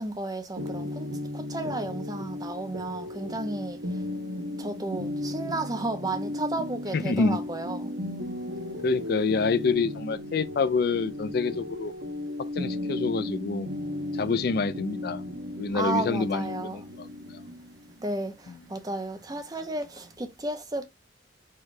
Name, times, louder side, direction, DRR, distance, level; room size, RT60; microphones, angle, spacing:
voice 1, 0.0-4.0 4.6-7.9 15.7-16.9 18.0-20.9, right 2 dB, 20° right, 0.7 m, -33 dB
sound 1, 0.6-20.1, left 1 dB, 80° right, 0.9 m, -36 dB
voice 2, 6.9-7.4 8.8-11.9 12.6-13.7 14.1-15.2 15.6-17.4, left 4 dB, 55° left, 0.4 m, -27 dB
4.5 x 2.3 x 4.7 m
head